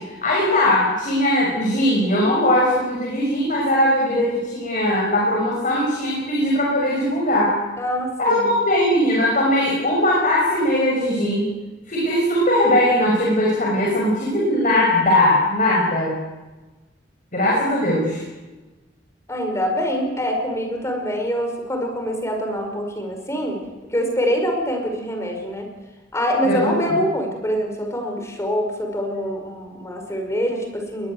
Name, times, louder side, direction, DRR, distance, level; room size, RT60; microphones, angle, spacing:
voice 1, 0.0-7.5 8.2-11.5 11.9-16.2 17.3-18.2 26.4-26.7, left 1 dB, 45° left, -3 dB, 6.2 m, -19 dB
voice 2, 7.8-8.5 19.3-25.7 26.1-31.1, equal, 15° left, 3 dB, 5.4 m, -25 dB
21.0 x 21.0 x 8.0 m, 1.2 s
head